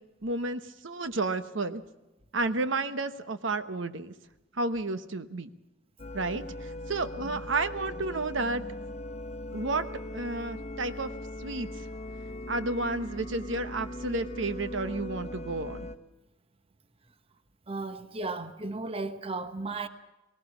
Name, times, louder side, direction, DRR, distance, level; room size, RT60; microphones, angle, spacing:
voice 1, 0.2-1.8 2.3-4.1 4.5-5.5 6.1-8.6 9.5-9.8 10.1-11.1 11.4-11.7 12.5-15.9, right 2 dB, 70° right, 1.0 m, -31 dB
sound 1, 6.0-16.0, left 1 dB, 35° left, 1.0 m, -39 dB
voice 2, 17.7-19.9, right 3 dB, 30° right, 1.1 m, -35 dB
20.0 x 18.5 x 7.2 m
head